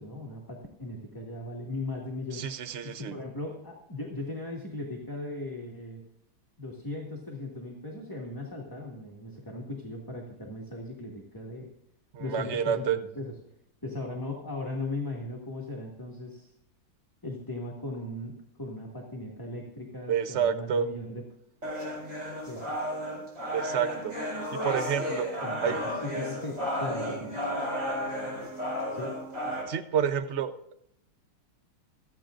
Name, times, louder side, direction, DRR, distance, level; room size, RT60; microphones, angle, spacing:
voice 1, 0.0-2.4 2.8-6.0 6.6-11.7 12.2-13.4 13.8-16.5 17.2-21.2 22.5-22.7 25.4-25.8 26.0-27.5 28.9-29.1, left 2 dB, 10° left, -2 dB, 1.8 m, -38 dB
voice 2, 2.3-3.2 12.1-13.0 20.1-20.9 23.5-24.1 24.6-25.3 25.6-25.8 29.7-30.5, right 8 dB, 60° right, 10 dB, 0.7 m, -28 dB
sound 1, 21.6-29.6, equal, 40° right, 5.8 m, -33 dB
27.5 x 9.2 x 2.6 m, 0.74 s
omnidirectional pair, 2.2 m